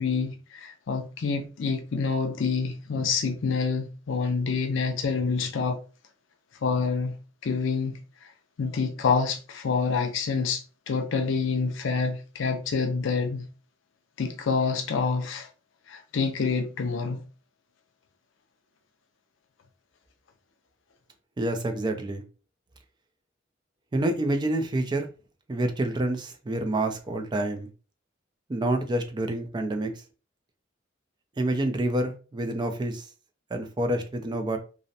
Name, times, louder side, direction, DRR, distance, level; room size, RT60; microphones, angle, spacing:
voice 1, 0.0-5.8 6.6-7.2 7.4-8.3 8.6-13.5 14.2-15.5 15.9-17.2, left 5 dB, 75° left, 0.5 m, -27 dB
voice 2, 21.4-22.2 23.9-25.1 25.5-27.7 28.5-29.9 31.4-33.1 33.5-34.6, right 1 dB, 25° right, 0.4 m, -27 dB
2.5 x 2.0 x 2.6 m
head